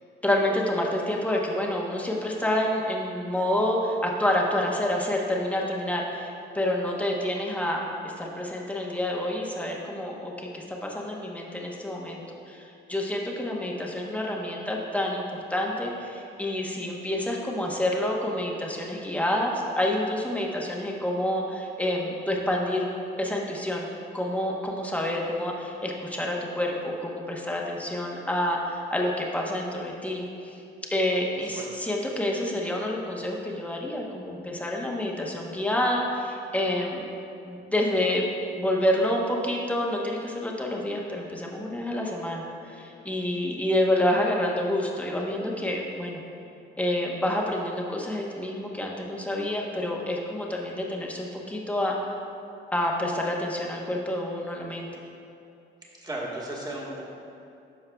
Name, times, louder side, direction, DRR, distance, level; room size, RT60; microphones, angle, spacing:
voice 1, 0.2-12.2 12.5-22.9 23.2-23.9 24.1-30.6 30.9-37.0 37.4-38.2 38.5-46.2 46.8-51.9 52.7-54.9, left 1 dB, 5° left, -1 dB, 0.9 m, -28 dB
voice 2, 31.3-31.7 56.0-57.1, right 1 dB, 20° right, -4 dB, 1.5 m, -35 dB
12.0 x 4.7 x 2.3 m, 2.7 s
cardioid pair, 90°, 20 cm